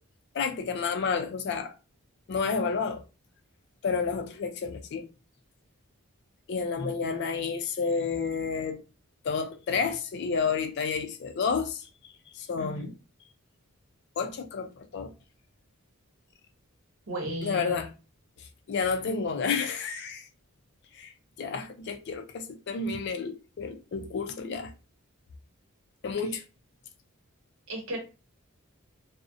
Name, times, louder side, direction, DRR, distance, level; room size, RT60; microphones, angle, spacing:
voice 1, 0.3-1.7 2.3-3.0 3.8-5.1 6.5-8.8 9.2-11.8 12.4-12.9 14.2-15.1 17.4-17.9 18.7-20.3 21.0-21.1 21.4-24.7 26.0-26.4, left 5 dB, 50° left, 0.3 m, -30 dB
voice 2, 12.6-12.9 17.1-17.9 27.7-28.0, right 1 dB, 65° right, 0.8 m, -35 dB
2.4 x 2.0 x 2.4 m
head